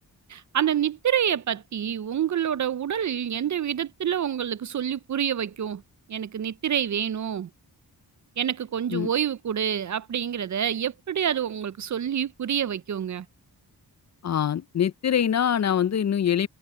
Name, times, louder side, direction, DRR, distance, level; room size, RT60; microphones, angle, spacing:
voice 1, 0.3-5.8 6.1-7.5 8.4-13.3, right 9 dB, 50° right, 0.5 m, -27 dB
voice 2, 14.2-16.5, left 9 dB, 45° left, 0.4 m, -24 dB
wide cardioid pair, 100°, 39 cm